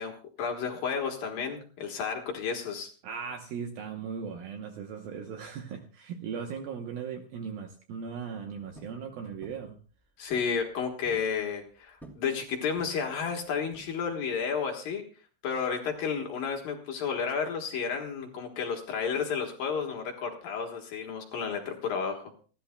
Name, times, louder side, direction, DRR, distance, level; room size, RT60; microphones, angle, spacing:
voice 1, 0.0-2.9 10.2-15.0 15.4-22.3, left 6 dB, 60° left, 2 dB, 2.7 m, -32 dB
voice 2, 3.0-9.8, right 6 dB, 75° right, 4 dB, 2.3 m, -38 dB
sound 1, 8.7-9.0 9.4-9.7 10.3-10.6 10.8-11.3 12.0-12.3 12.8-13.1 13.7-14.2, right 2 dB, ahead, 0.4 m, -50 dB
28.5 x 11.5 x 2.2 m, 0.39 s
omnidirectional pair, 5.3 m